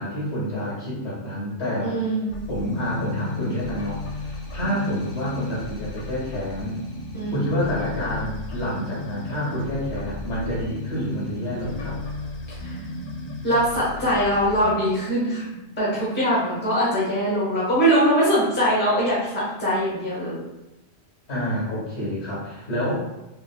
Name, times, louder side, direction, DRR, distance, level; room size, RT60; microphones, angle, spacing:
voice 1, 0.0-1.9 2.5-6.8 7.3-12.0 21.3-23.0, equal, 85° left, -8 dB, 1.6 m, -28 dB
voice 2, 1.8-2.4 7.1-7.5 12.5-12.8 13.4-20.4, equal, 10° left, -7 dB, 0.9 m, -22 dB
sound 1, 2.3-14.7, left 2 dB, 50° left, 0.4 m, -34 dB
3.7 x 2.2 x 2.2 m, 0.97 s
omnidirectional pair, 1.1 m